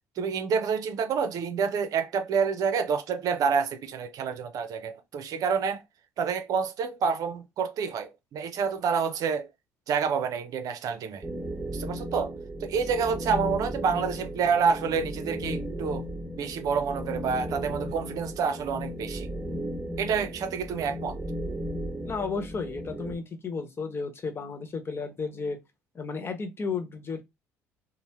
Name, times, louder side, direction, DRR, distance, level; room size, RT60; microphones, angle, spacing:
voice 1, 0.2-5.8 6.2-9.5 9.9-11.3 11.7-12.3 12.6-16.1 16.4-19.3 20.0-21.2, right 6 dB, 60° right, 0.5 m, -28 dB
sound 1, 11.2-23.2, equal, 15° right, 1.3 m, -35 dB
voice 2, 22.0-25.6 25.9-27.2, left 4 dB, 35° left, 1.0 m, -33 dB
2.7 x 2.1 x 3.4 m
hypercardioid pair, 65°, 7 cm